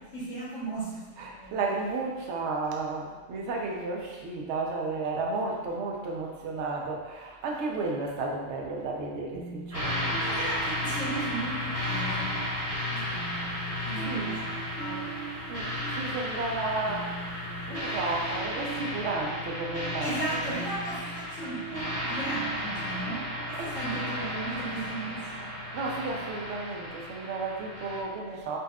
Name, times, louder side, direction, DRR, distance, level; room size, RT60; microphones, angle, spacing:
voice 1, 0.0-1.6 10.2-13.6 13.8-15.8 20.0-25.7, right 2 dB, 85° left, -9 dB, 1.5 m, -37 dB
voice 2, 1.2-10.3 14.1-14.4 15.5-17.3 17.7-20.7 23.5-24.1 25.7-28.6, right 3 dB, 70° right, -1 dB, 0.8 m, -33 dB
sound 1, 9.3-24.9, right 6 dB, 55° left, 0.7 m, -43 dB
sound 2, 9.7-28.0, left 1 dB, 35° right, 0.8 m, -34 dB
4.0 x 2.4 x 2.3 m, 1.2 s
omnidirectional pair, 1.3 m